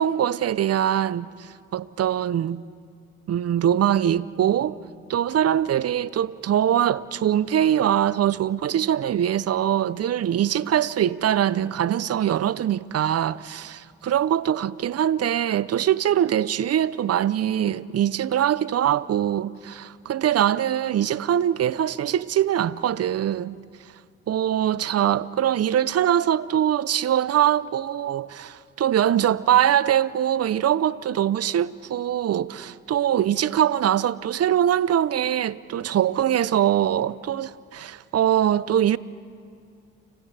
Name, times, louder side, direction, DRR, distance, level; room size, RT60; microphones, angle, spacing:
voice 1, 0.0-2.6 3.3-4.8 5.1-23.6 24.3-39.0, right 10 dB, 55° right, 0.7 m, -23 dB
29.5 x 29.5 x 3.4 m
supercardioid pair, 50°, 30 cm